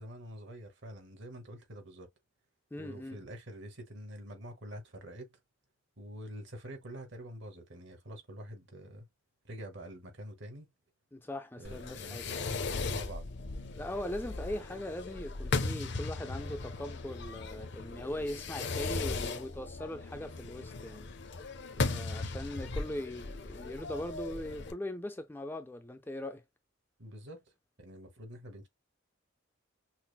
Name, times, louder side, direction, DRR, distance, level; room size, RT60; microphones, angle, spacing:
voice 1, 0.0-2.1 2.8-5.4 6.0-9.1 9.4-10.7 11.6-13.2 21.8-22.0 27.0-27.4 27.8-28.7, equal, 60° right, 1.2 m, -46 dB
voice 2, 2.7-3.2 11.1-12.3 13.7-21.1 21.8-26.4, left 1 dB, 10° left, 0.3 m, -40 dB
Fireworks, 11.6-24.7, left 3 dB, 55° left, 0.6 m, -37 dB
5.8 x 2.0 x 2.3 m
head